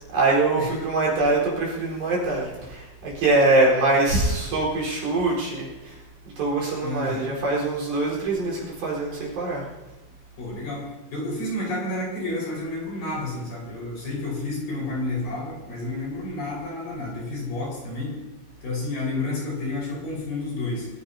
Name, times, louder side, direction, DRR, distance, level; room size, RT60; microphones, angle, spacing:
voice 1, 0.1-5.9 6.4-9.7, right 2 dB, 55° right, -4 dB, 6.3 m, -23 dB
voice 2, 6.8-7.3 10.4-18.2 18.6-20.9, left 2 dB, 50° left, -3 dB, 6.7 m, -30 dB
23.0 x 17.0 x 2.9 m, 1.1 s
omnidirectional pair, 5.4 m